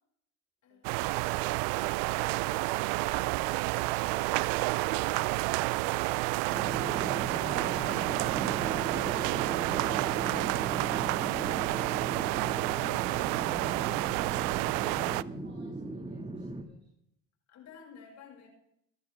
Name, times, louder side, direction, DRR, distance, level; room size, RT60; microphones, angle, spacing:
voice 1, 0.6-1.0 1.8-4.3 4.7-5.7 6.7-8.3 9.0-11.6 13.5-14.0 17.5-18.5, left 5 dB, 60° left, 0 dB, 6.4 m, -54 dB
sound 1, 0.8-15.2, right 22 dB, 85° right, 0.5 m, -30 dB
sound 2, 6.5-16.6, right 2 dB, 20° right, 1.9 m, -38 dB
voice 2, 14.1-16.9, right 4 dB, 35° right, -2 dB, 4.9 m, -56 dB
19.5 x 13.5 x 3.5 m, 0.75 s
supercardioid pair, 85°, 32 cm